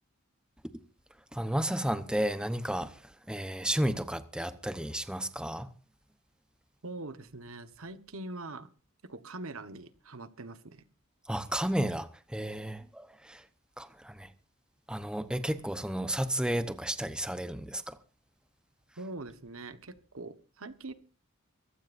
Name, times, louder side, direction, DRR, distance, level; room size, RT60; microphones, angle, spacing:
voice 1, 1.3-2.9 3.3-5.7 11.3-13.4 13.8-14.3 14.9-18.0, right 1 dB, 5° right, 0.9 m, -32 dB
voice 2, 6.8-8.7 9.0-10.9 19.0-20.9, right 2 dB, 75° right, 1.3 m, -43 dB
24.0 x 15.5 x 2.6 m
head